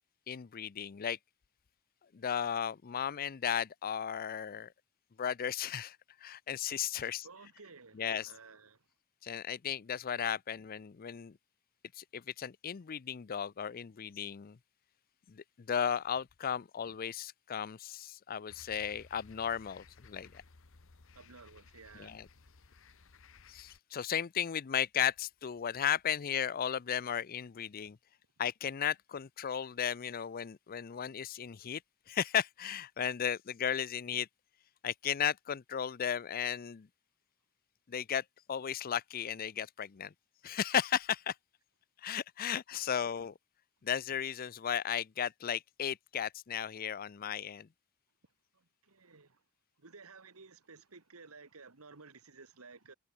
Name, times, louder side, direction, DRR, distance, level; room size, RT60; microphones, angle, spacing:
voice 1, 0.3-1.2 2.1-4.7 5.2-6.0 6.2-7.3 7.9-8.3 9.2-11.4 12.0-14.6 15.3-20.4 22.0-22.3 23.5-28.0 28.4-31.8 32.1-34.3 34.8-36.9 37.9-40.1 40.4-41.3 42.0-43.3 43.8-47.7, left 8 dB, 40° left, 0.4 m, -35 dB
voice 2, 7.0-8.9 21.2-22.2 48.5-49.4 49.8-52.9, right 4 dB, 75° right, 1.7 m, -55 dB
sound 1, 18.5-23.8, left 4 dB, 65° left, 1.2 m, -59 dB
head